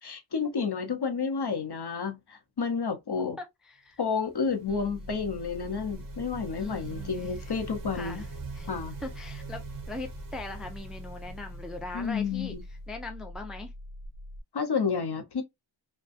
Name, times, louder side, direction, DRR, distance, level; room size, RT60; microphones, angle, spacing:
voice 1, 0.0-3.4 4.0-8.2 8.7-9.0 11.9-12.6 14.5-15.4, left 5 dB, 55° left, 0.7 m, -30 dB
voice 2, 3.4-4.0 4.7-5.1 6.5-7.1 7.4-7.5 7.9-8.3 8.5-8.7 9.0-12.6 12.9-13.7, left 2 dB, ahead, 0.4 m, -41 dB
sound 1, 4.1-12.9, right 5 dB, 45° right, 0.7 m, -45 dB
sound 2, 4.7-14.4, left 1 dB, 90° left, 0.6 m, -44 dB
2.5 x 2.2 x 2.4 m
wide cardioid pair, 55°, 48 cm